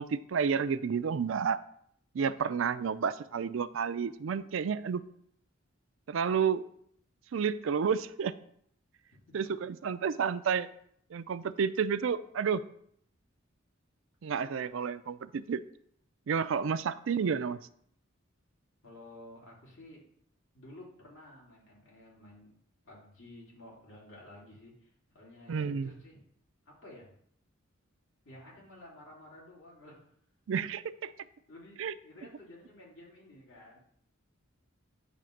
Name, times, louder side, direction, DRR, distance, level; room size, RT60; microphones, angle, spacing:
voice 1, 0.0-1.6 2.1-5.0 6.1-6.6 7.3-8.3 9.3-10.7 11.1-12.6 14.2-15.6 16.3-17.6 25.5-25.9 30.5-31.1 31.8-31.9, right 6 dB, 70° right, 14 dB, 0.4 m, -30 dB
voice 2, 17.1-17.5 18.8-20.0 20.5-22.5 22.8-26.2 26.7-27.1 28.2-30.1 31.5-33.8, left 1 dB, 75° left, -4 dB, 2.7 m, -53 dB
9.0 x 3.3 x 6.4 m, 0.67 s
head